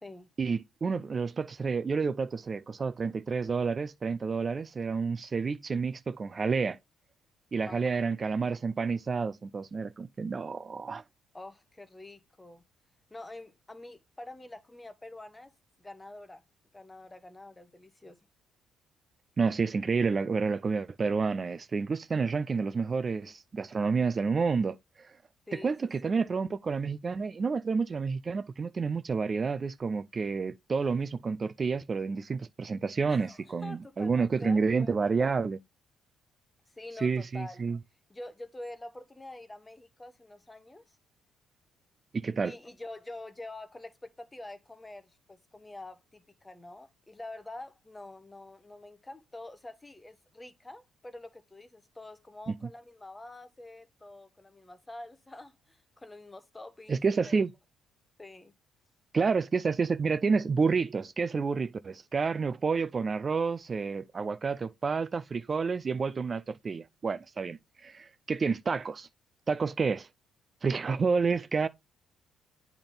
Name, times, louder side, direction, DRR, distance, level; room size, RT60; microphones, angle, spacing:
voice 1, 0.4-6.8 7.5-11.0 19.4-25.2 25.5-35.6 37.0-37.8 42.1-42.5 52.5-52.6 56.9-57.5 59.1-69.1 69.5-70.1 70.6-71.7, right 5 dB, 30° right, 0.4 m, -29 dB
voice 2, 7.6-8.2 11.3-12.6 13.1-15.5 15.8-16.4 16.7-18.2 25.5-25.7 26.0-26.2 33.1-35.2 36.7-37.6 38.1-41.0 42.4-57.3 58.2-58.5, left 2 dB, 15° left, 1.0 m, -46 dB
8.8 x 3.4 x 3.8 m
cardioid pair, 110°, 0 cm